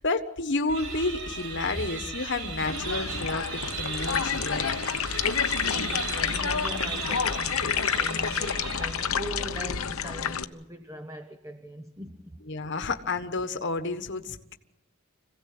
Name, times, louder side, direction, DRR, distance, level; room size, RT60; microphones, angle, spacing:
voice 1, 0.0-4.7 12.5-14.5, left 3 dB, 55° left, 1.3 m, -30 dB
sound 1, 0.7-9.4, right 4 dB, 80° right, 4.7 m, -36 dB
sound 2, 2.6-10.4, left 7 dB, 90° left, 1.0 m, -29 dB
voice 2, 5.0-12.4, right 1 dB, 15° right, 1.0 m, -41 dB
26.0 x 17.0 x 7.8 m
head